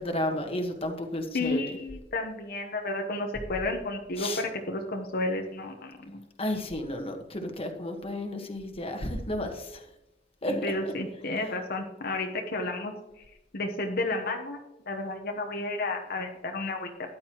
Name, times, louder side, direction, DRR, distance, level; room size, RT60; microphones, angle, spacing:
voice 1, 0.0-1.6 4.2-4.4 6.4-9.8 10.4-10.7, left 1 dB, 30° left, 5 dB, 1.4 m, -32 dB
voice 2, 1.3-6.2 10.5-12.9 13.5-14.6 14.9-16.9, left 2 dB, 55° left, 3 dB, 1.0 m, -32 dB
13.5 x 10.5 x 3.0 m, 0.91 s
head